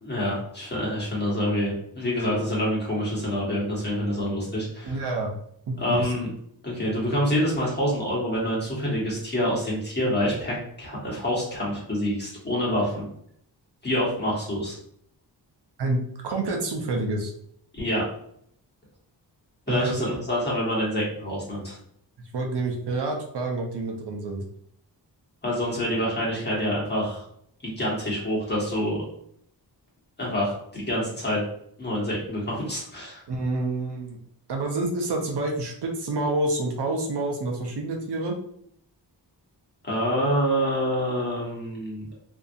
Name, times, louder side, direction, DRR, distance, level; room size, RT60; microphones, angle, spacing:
voice 1, 0.0-5.0 5.8-6.3 6.6-13.0 13.8-14.8 17.7-18.0 19.7-21.8 25.4-27.2 27.6-29.0 30.2-31.4 31.8-33.2 39.8-42.1, equal, 25° left, -6 dB, 1.3 m, -27 dB
voice 2, 4.8-5.3 5.7-6.1 15.8-17.3 19.7-19.9 22.3-24.4 33.3-34.2 34.5-38.4, right 2 dB, 70° right, 1 dB, 0.7 m, -28 dB
2.7 x 2.4 x 2.6 m, 0.67 s
wide cardioid pair, 95°, 42 cm